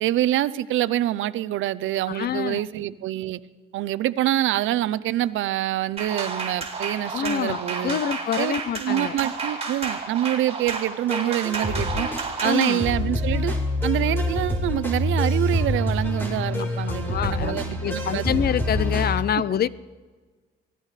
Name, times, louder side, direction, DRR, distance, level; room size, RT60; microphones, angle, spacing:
voice 1, 0.0-3.4 3.7-8.0 8.4-8.5 8.8-12.1 12.4-13.5 13.8-18.3 19.4-19.5, right 13 dB, 80° right, 17 dB, 0.6 m, -26 dB
voice 2, 2.1-2.6 7.1-9.2 12.4-12.8 16.9-19.7, left 9 dB, 50° left, 19 dB, 0.5 m, -26 dB
sound 1, 6.0-12.8, right 4 dB, 30° right, 4.4 m, -31 dB
sound 2, 11.1-19.1, left 1 dB, 10° left, 4.2 m, -26 dB
23.5 x 17.0 x 3.3 m, 1.4 s
cardioid pair, 90°, 20 cm